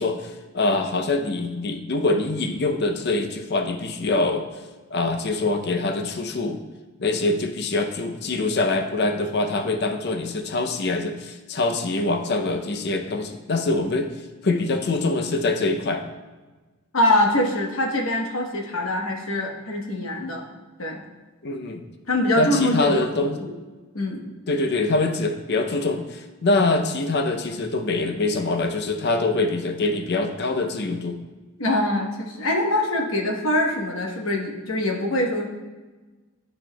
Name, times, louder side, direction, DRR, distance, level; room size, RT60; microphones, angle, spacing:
voice 1, 0.0-4.4 4.9-6.6 7.0-14.1 14.4-16.0 21.4-21.8 22.4-23.4 24.5-31.2, left 2 dB, 55° left, 6 dB, 0.6 m, -24 dB
voice 2, 16.9-20.4 20.8-21.0 22.1-23.5 23.9-24.3 31.6-35.5, left 1 dB, 70° left, 1 dB, 1.1 m, -24 dB
11.5 x 4.4 x 2.2 m, 1.3 s
head